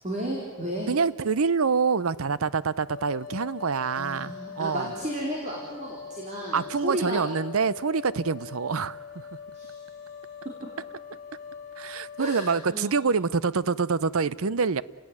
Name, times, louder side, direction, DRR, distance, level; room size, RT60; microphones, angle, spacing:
voice 1, 0.0-0.9 4.0-7.2 9.5-9.7 12.2-12.9, right 1 dB, 35° right, -2 dB, 4.1 m, -33 dB
voice 2, 0.9-4.9 6.5-9.3 11.8-14.8, right 5 dB, 80° right, 18 dB, 0.7 m, -26 dB
sound 1, 2.9-12.7, left 7 dB, 40° left, 1.9 m, -42 dB
30.0 x 17.5 x 9.8 m, 1.5 s
head